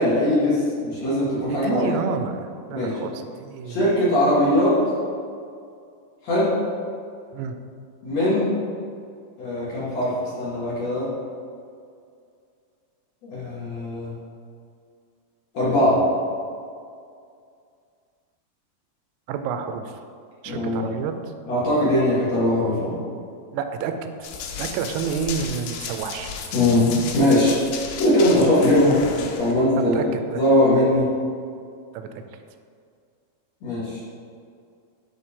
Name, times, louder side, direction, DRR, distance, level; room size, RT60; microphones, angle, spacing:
voice 1, 0.0-1.9 2.7-2.9 3.7-4.8 6.2-6.5 8.0-8.5 9.4-11.1 13.2-14.1 15.5-16.0 20.5-20.9 21.5-22.9 26.5-27.6 27.9-29.0 29.4-29.9 30.4-31.1 33.6-34.0, left 1 dB, 50° left, -9 dB, 2.5 m, -20 dB
voice 2, 1.5-3.9 7.3-7.6 19.3-20.0 20.4-21.3 23.5-23.9 24.2-24.3 24.6-26.3 29.8-30.4 31.9-32.1, right 6 dB, 85° right, 7 dB, 2.6 m, -29 dB
Run, 24.2-29.5, left 6 dB, 90° left, 2.7 m, -34 dB
11.5 x 4.1 x 3.6 m, 2.3 s
omnidirectional pair, 4.8 m